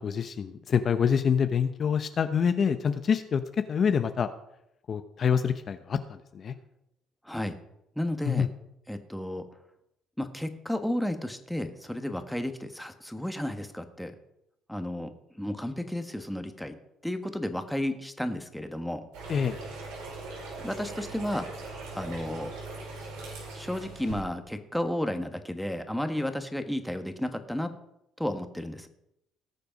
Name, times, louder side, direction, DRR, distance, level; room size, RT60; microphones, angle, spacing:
voice 1, 0.0-3.4 3.7-4.3 4.9-6.5 8.2-8.5 19.3-19.6, left 7 dB, 45° left, 9 dB, 0.8 m, -26 dB
voice 2, 7.2-7.6 7.9-8.5 8.9-9.5 10.2-14.1 14.7-16.8 17.0-19.1 20.6-22.5 23.5-27.7 28.2-28.9, left 1 dB, 5° left, 7 dB, 1.5 m, -33 dB
sound 1, 19.1-24.2, right 3 dB, 85° right, 5.2 m, -40 dB
18.5 x 6.8 x 5.2 m, 0.82 s
supercardioid pair, 85°, 0 cm